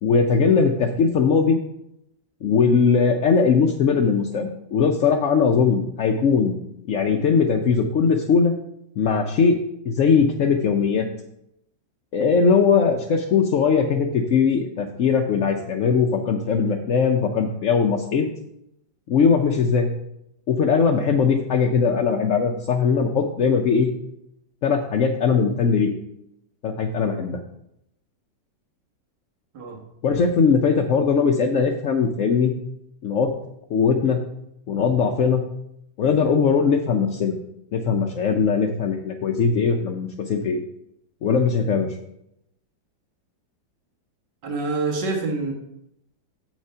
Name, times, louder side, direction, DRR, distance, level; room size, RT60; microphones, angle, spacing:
voice 1, 0.0-1.6 2.4-6.6 6.9-8.5 9.0-9.6 9.9-11.1 12.1-18.2 19.1-19.9 20.5-23.9 24.6-25.9 26.6-27.4 30.0-32.6 33.0-33.4 33.7-34.3 34.7-35.5 36.0-37.4 37.7-40.6 41.2-42.0, left 5 dB, 65° left, 2 dB, 0.8 m, -20 dB
voice 2, 44.4-45.5, right 3 dB, 65° right, 1 dB, 2.2 m, -26 dB
7.5 x 6.1 x 5.5 m, 0.80 s
omnidirectional pair, 2.0 m